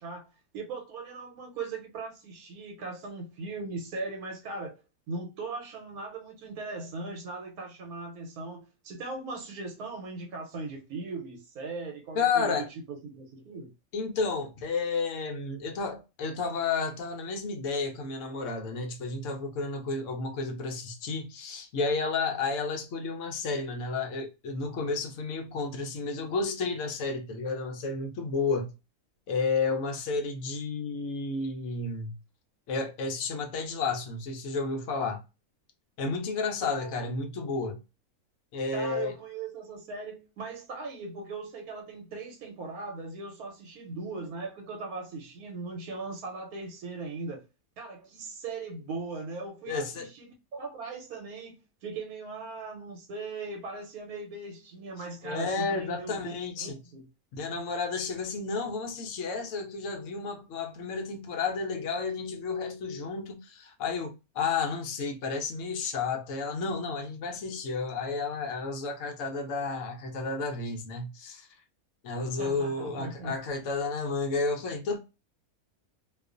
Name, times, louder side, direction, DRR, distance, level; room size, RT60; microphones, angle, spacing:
voice 1, 0.0-4.8 5.1-13.7 36.7-37.0 38.7-47.5 47.8-57.1 72.4-73.3, right 3 dB, 85° right, 1.2 m, -39 dB
voice 2, 12.2-12.7 13.9-28.7 29.3-32.1 32.7-35.2 36.0-37.8 38.5-39.1 49.7-50.1 55.2-56.8 57.3-71.5 72.0-75.0, left 4 dB, 70° left, 0.8 m, -31 dB
2.4 x 2.3 x 2.4 m
omnidirectional pair, 1.5 m